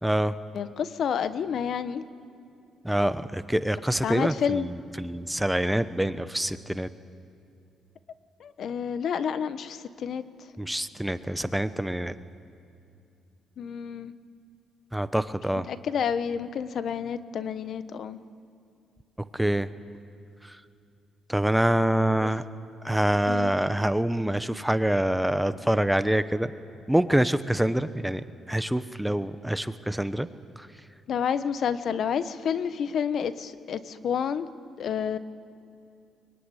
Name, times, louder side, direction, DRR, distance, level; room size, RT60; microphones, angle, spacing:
voice 1, 0.0-0.4 2.8-6.9 10.6-12.1 14.9-15.7 19.3-19.7 20.4-20.6 21.3-22.4 22.8-26.5 26.9-30.3 30.6-30.7, right 1 dB, 5° right, 12 dB, 0.9 m, -26 dB
voice 2, 0.5-2.0 4.0-4.7 8.4-10.2 13.6-14.1 15.7-18.2 22.2-22.3 23.3-23.5 31.1-34.5 34.8-35.2, left 7 dB, 65° left, 12 dB, 1.2 m, -29 dB
23.5 x 23.0 x 9.9 m, 2.5 s
cardioid pair, 90°, 0 cm